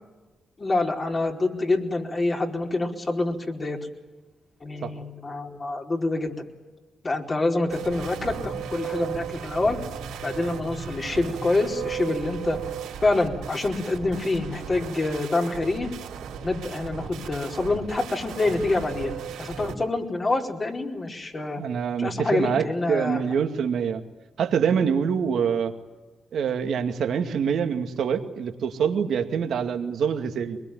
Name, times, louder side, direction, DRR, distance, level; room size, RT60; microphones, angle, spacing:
voice 1, 0.6-3.8 4.6-6.4 7.0-9.8 10.2-12.6 13.0-15.9 16.4-19.1 19.4-21.6 22.0-23.2, left 2 dB, 40° left, 1 dB, 4.6 m, -26 dB
sound 1, 7.7-19.7, right 8 dB, 90° right, 4.3 m, -36 dB
voice 2, 21.6-24.0 24.4-25.7 26.3-30.6, right 7 dB, 75° right, 6 dB, 2.2 m, -25 dB
23.5 x 21.5 x 9.4 m, 1.2 s
supercardioid pair, 50°, 0 cm